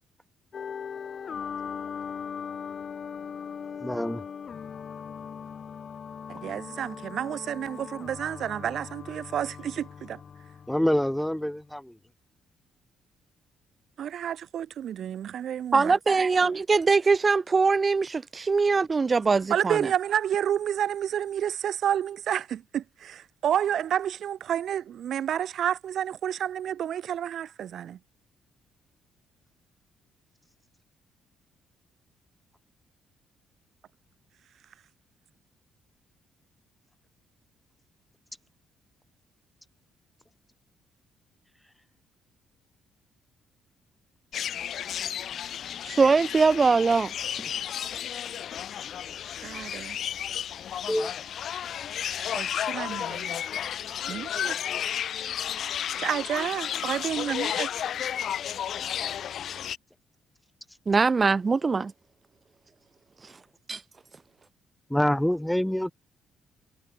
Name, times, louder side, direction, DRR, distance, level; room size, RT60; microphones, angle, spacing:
sound 1, 0.5-11.5, left 7 dB, 40° left, 4.5 m, -39 dB
voice 1, 3.8-4.2 10.7-12.0 50.9-51.1 64.9-65.9, equal, 5° left, 2.2 m, -26 dB
voice 2, 6.3-10.2 14.0-16.0 19.5-28.0 49.4-50.0 52.3-53.4 54.1-54.5 56.0-57.7, right 10 dB, 60° right, 3.1 m, -30 dB
voice 3, 15.7-19.9 45.9-47.1 60.9-61.9 63.2-63.3 63.7-63.8, right 4 dB, 25° right, 0.5 m, -22 dB
sound 2, 44.3-59.8, left 9 dB, 60° left, 0.7 m, -33 dB
cardioid pair, 130°, 0 cm